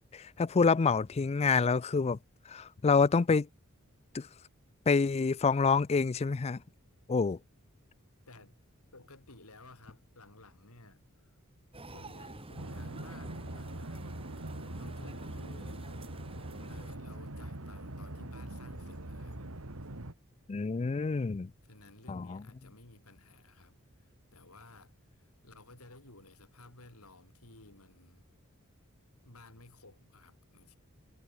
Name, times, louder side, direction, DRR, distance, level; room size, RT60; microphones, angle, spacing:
voice 1, 0.1-2.2 2.5-3.5 4.1-4.3 4.9-6.6 7.1-7.4 20.5-21.5 22.1-22.4, left 4 dB, 30° left, 0.4 m, -27 dB
voice 2, 8.3-8.6 8.9-11.4 11.8-14.1 14.4-15.9 16.7-19.4 21.6-28.3 29.2-30.8, left 2 dB, 90° left, 5.9 m, -56 dB
sound 1, 11.7-17.0, right 1 dB, 25° right, 3.7 m, -48 dB
sound 2, 12.6-20.1, right 1 dB, 75° right, 2.5 m, -43 dB
head